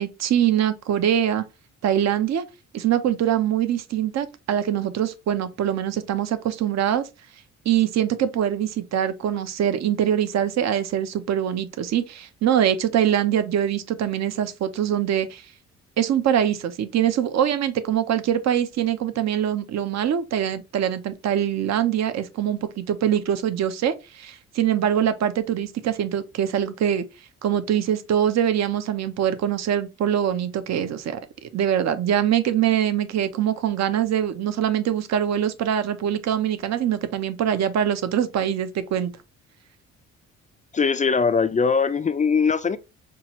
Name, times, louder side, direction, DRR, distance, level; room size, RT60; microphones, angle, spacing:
voice 1, 0.0-1.4 1.8-2.4 2.7-7.1 7.6-15.4 16.0-27.0 27.4-39.1, right 10 dB, 60° right, 0.7 m, -23 dB
voice 2, 40.7-42.8, left 5 dB, 25° left, 0.4 m, -21 dB
5.7 x 2.4 x 3.0 m
cardioid pair, 90°, 30 cm